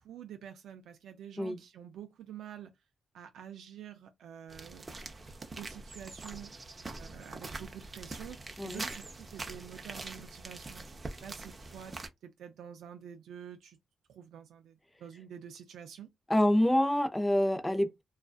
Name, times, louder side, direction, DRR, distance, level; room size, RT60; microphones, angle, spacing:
voice 1, 0.0-2.7 3.1-4.9 5.6-6.5 6.9-12.0 12.2-13.8 14.1-16.1, right 9 dB, 85° right, 0.3 m, -48 dB
sound 1, 4.5-12.1, right 3 dB, 30° right, 0.5 m, -44 dB
voice 2, 16.3-18.0, left 1 dB, 10° left, 0.6 m, -27 dB
2.3 x 2.3 x 2.4 m
cardioid pair, 75°, 0 cm